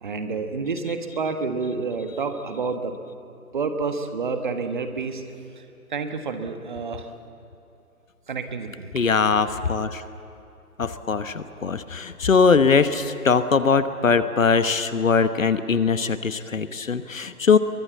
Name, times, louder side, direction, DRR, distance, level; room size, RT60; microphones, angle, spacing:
voice 1, 0.0-2.9 3.5-5.2 5.9-7.1 8.3-8.9, right 4 dB, 30° right, 7 dB, 1.4 m, -29 dB
voice 2, 8.9-10.0 10.8-17.6, left 5 dB, 60° left, 11 dB, 1.2 m, -21 dB
24.0 x 23.0 x 7.5 m, 2.7 s
figure-of-eight pair, 155°, 45 cm